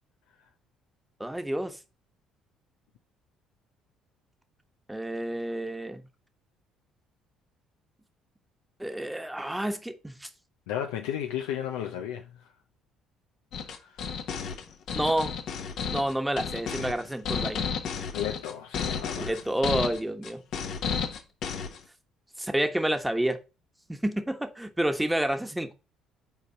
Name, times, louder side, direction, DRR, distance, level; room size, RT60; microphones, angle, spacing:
voice 1, 1.2-1.8 4.9-6.0 8.8-10.3 14.9-15.4 15.9-17.6 19.2-20.4 22.4-23.4 23.9-25.7, right 1 dB, 5° right, 1.2 m, -29 dB
voice 2, 10.7-12.5 13.7-14.0 18.1-19.4, left 10 dB, 80° left, 0.6 m, -34 dB
sound 1, 13.5-21.8, left 6 dB, 65° left, 1.1 m, -32 dB
5.7 x 4.2 x 5.5 m
hypercardioid pair, 60°, 0 cm